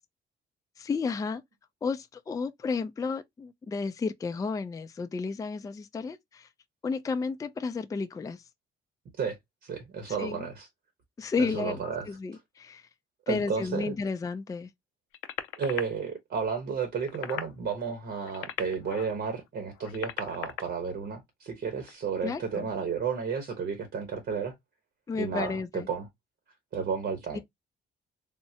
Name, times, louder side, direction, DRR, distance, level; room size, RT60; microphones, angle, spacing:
voice 1, 0.8-1.4 1.8-6.5 6.8-8.4 10.2-10.5 11.2-11.8 12.1-12.8 13.3-14.7 22.2-22.7 25.1-25.9 27.3-27.4, left 4 dB, 15° left, 0.3 m, -32 dB
voice 2, 9.6-10.7 11.4-12.1 13.3-14.0 15.6-24.5 25.1-26.1 26.7-27.4, right 6 dB, 60° right, 1.0 m, -32 dB
sound 1, 15.1-15.8 16.9-17.5 18.2-19.1 19.8-20.6 21.8-22.0, left 11 dB, 85° left, 0.4 m, -37 dB
3.6 x 2.0 x 2.7 m
cardioid pair, 90°, 20 cm